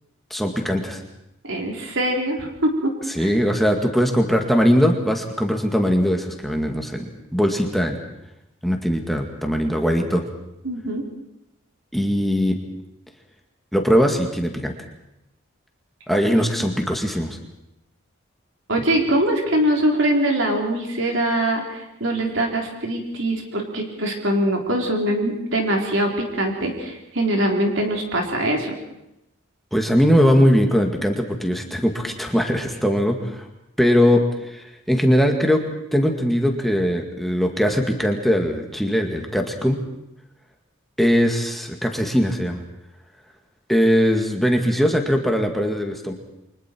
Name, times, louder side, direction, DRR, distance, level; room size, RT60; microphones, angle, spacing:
voice 1, 0.3-1.0 3.1-8.0 8.6-10.2 11.9-12.6 13.7-14.7 16.1-17.4 29.7-33.5 33.8-35.6 35.9-39.8 41.0-42.6 43.7-46.1, equal, ahead, 2 dB, 2.0 m, -20 dB
voice 2, 1.4-2.9 3.2-3.3 10.6-11.0 18.7-28.8, right 1 dB, 65° right, 1 dB, 3.8 m, -23 dB
29.5 x 24.0 x 4.6 m, 0.86 s
head